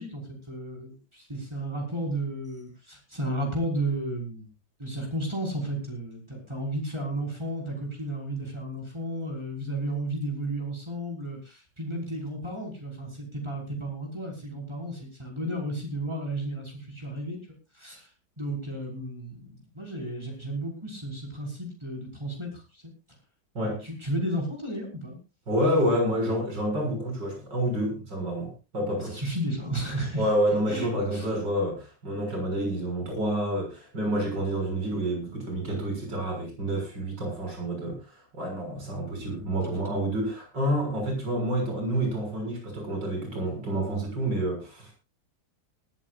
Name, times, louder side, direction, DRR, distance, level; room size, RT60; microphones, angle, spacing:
voice 1, 0.0-4.5 4.8-17.4 17.7-18.1 18.4-22.8 23.6-25.2 29.0-30.2 30.7-31.3, right 1 dB, 15° right, -2 dB, 5.8 m, -33 dB
voice 2, 25.5-29.2 30.2-44.9, right 1 dB, 80° right, 1 dB, 7.4 m, -28 dB
20.0 x 15.0 x 2.6 m, 0.30 s
omnidirectional pair, 1.9 m